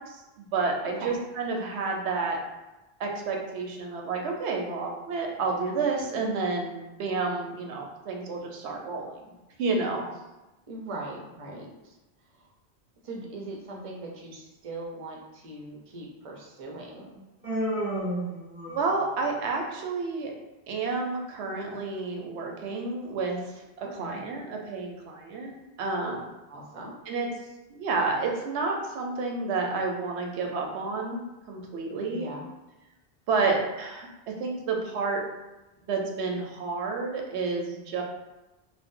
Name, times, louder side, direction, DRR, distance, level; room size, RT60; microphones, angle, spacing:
voice 1, 0.0-2.4 3.0-9.2 9.6-10.0 18.7-20.3 20.7-26.2 27.1-27.3 27.7-31.2 31.5-32.3 33.3-35.2 35.8-38.0, right 4 dB, 85° right, 1 dB, 0.9 m, -30 dB
voice 2, 0.8-1.2 10.7-12.0 12.2-12.5 13.0-17.2 23.8-24.2 26.5-26.9 32.1-32.4, right 2 dB, 40° right, -1 dB, 0.5 m, -40 dB
Human voice, 17.4-19.1, right 1 dB, 10° right, 0.9 m, -31 dB
2.6 x 2.1 x 3.6 m, 1.0 s
omnidirectional pair, 1.1 m